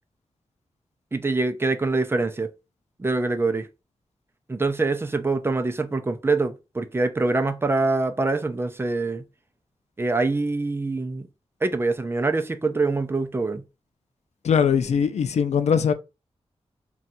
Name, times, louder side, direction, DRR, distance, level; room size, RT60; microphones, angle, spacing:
voice 1, 1.1-2.5 3.0-3.7 4.5-9.2 10.0-11.3 11.6-13.6, right 3 dB, 20° right, 0.4 m, -24 dB
voice 2, 14.4-15.9, left 7 dB, 85° left, 0.4 m, -21 dB
2.6 x 2.3 x 4.0 m
wide cardioid pair, 115°, 11 cm